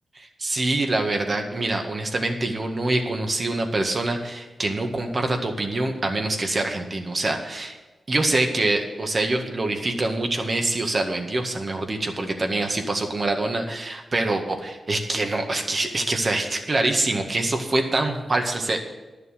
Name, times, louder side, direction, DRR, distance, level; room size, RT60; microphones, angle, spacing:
voice 1, 0.2-7.8 8.1-18.8, right 2 dB, 50° right, 4 dB, 1.8 m, -25 dB
11.0 x 6.8 x 8.2 m, 1.2 s
cardioid pair, 45°, 0 cm